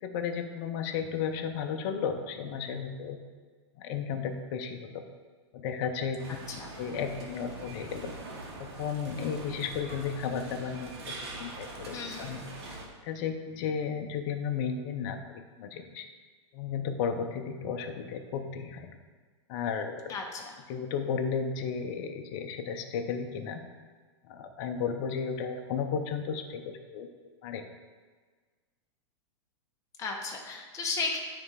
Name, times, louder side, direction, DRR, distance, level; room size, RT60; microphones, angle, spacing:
voice 1, 0.0-3.2 3.8-5.0 5.5-6.2 6.5-8.2 8.6-12.8 13.0-16.1 16.5-18.9 19.5-20.1 20.7-23.6 24.3-27.1 27.4-27.6, left 6 dB, 45° left, 5 dB, 0.6 m, -34 dB
sound 1, 6.2-12.9, right 2 dB, 65° right, 1.7 m, -43 dB
voice 2, 11.9-12.3 20.1-20.5 30.0-31.2, left 4 dB, 20° left, 0 dB, 1.0 m, -34 dB
9.4 x 3.3 x 4.8 m, 1.5 s
hypercardioid pair, 145°, 15 cm